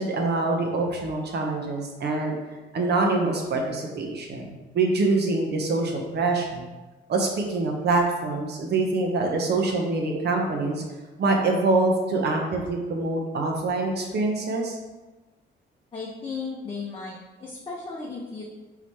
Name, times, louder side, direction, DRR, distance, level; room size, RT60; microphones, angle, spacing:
voice 1, 0.0-2.3 2.7-6.7 7.1-10.8 11.2-14.8, right 3 dB, 55° right, 1 dB, 0.9 m, -25 dB
voice 2, 15.9-18.4, left 4 dB, 25° left, -4 dB, 0.8 m, -35 dB
4.0 x 3.0 x 4.2 m, 1.2 s
cardioid pair, 90°, 20 cm